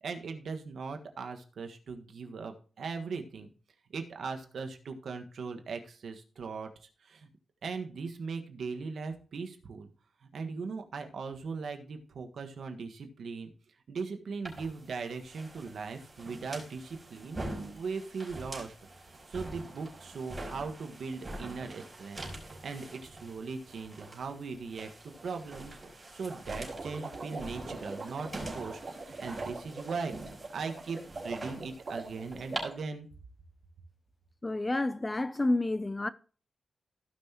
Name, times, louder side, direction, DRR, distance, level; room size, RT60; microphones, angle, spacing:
voice 1, 0.0-3.5 3.9-7.3 7.6-9.9 10.2-13.5 13.9-17.4 17.7-18.7 19.1-30.1 30.5-33.1, right 4 dB, 70° right, 1.4 m, -39 dB
sound 1, 14.5-32.6, right 2 dB, 15° right, 4.7 m, -45 dB
sound 2, 26.3-32.8, right 3 dB, 40° right, 2.9 m, -43 dB
voice 2, 34.4-36.1, left 2 dB, 20° left, 0.4 m, -29 dB
16.0 x 6.0 x 2.9 m
wide cardioid pair, 130°, 0 cm